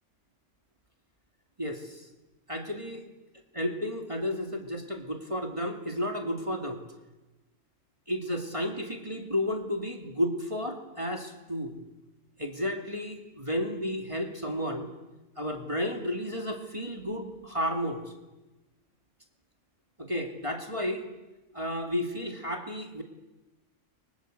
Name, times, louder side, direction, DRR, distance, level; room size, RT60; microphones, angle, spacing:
voice 1, 1.6-2.0 2.5-3.0 3.5-6.8 8.1-11.8 12.4-14.9 15.4-18.0 20.0-21.0 21.5-23.0, left 1 dB, 25° right, 3 dB, 2.6 m, -32 dB
29.5 x 24.5 x 8.0 m, 1.1 s
omnidirectional pair, 1.4 m